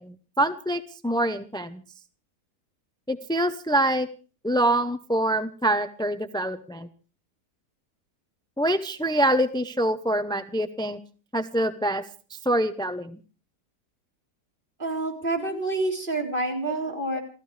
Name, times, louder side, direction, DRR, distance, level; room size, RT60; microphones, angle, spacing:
voice 1, 0.0-1.8 3.1-4.1 4.4-6.9 8.6-11.0 11.3-12.0 12.4-13.2, right 1 dB, 5° left, 11 dB, 0.4 m, -25 dB
voice 2, 14.8-17.2, right 2 dB, 30° right, 2 dB, 4.1 m, -28 dB
28.0 x 15.0 x 3.4 m, 0.36 s
omnidirectional pair, 1.7 m